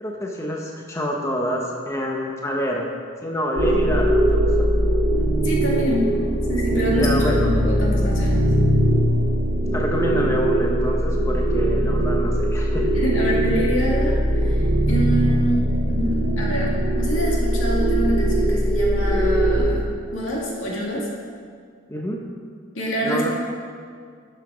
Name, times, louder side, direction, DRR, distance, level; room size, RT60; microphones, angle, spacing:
voice 1, 0.0-2.9 3.2-4.7 5.1-5.2 6.9-7.5 9.7-13.0 21.9-22.2 23.0-23.3, equal, 15° left, -1 dB, 0.8 m, -27 dB
sound 1, 3.6-19.6, right 1 dB, 70° right, 1.6 m, -20 dB
voice 2, 5.4-6.1 6.5-8.5 12.9-21.1 22.7-23.3, equal, 80° left, -3 dB, 2.2 m, -26 dB
12.0 x 5.7 x 5.0 m, 2.1 s
head